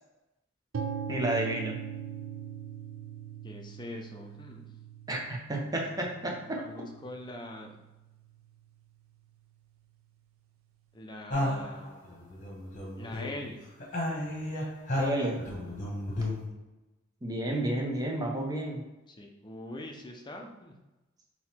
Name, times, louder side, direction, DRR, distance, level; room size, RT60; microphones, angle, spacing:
sound 1, 0.7-8.6, right 7 dB, 85° right, 0.5 m, -41 dB
voice 1, 1.1-1.8 5.1-6.6 15.0-15.4 17.2-18.8, right 1 dB, 20° right, -1 dB, 0.8 m, -31 dB
voice 2, 3.4-4.6 6.6-7.8 10.9-12.0 13.0-13.6 19.1-20.8, left 1 dB, 20° left, 2 dB, 0.5 m, -43 dB
sound 2, 11.3-13.5 13.8-16.5, left 1 dB, 40° left, 1.2 m, -33 dB
3.9 x 2.9 x 4.3 m, 1.0 s
head